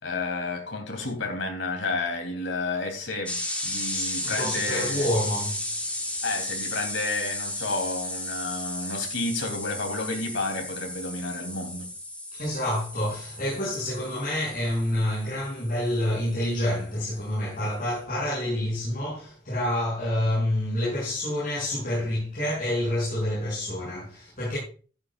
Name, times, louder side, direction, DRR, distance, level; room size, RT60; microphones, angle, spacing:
voice 1, 0.0-5.1 6.2-11.9, left 3 dB, 70° left, 3.2 m, -31 dB
sound 1, 3.3-16.9, left 1 dB, 10° left, 2.5 m, -34 dB
voice 2, 3.9-5.6 12.3-24.6, left 1 dB, 45° left, 7.1 m, -28 dB
14.0 x 11.0 x 2.5 m
head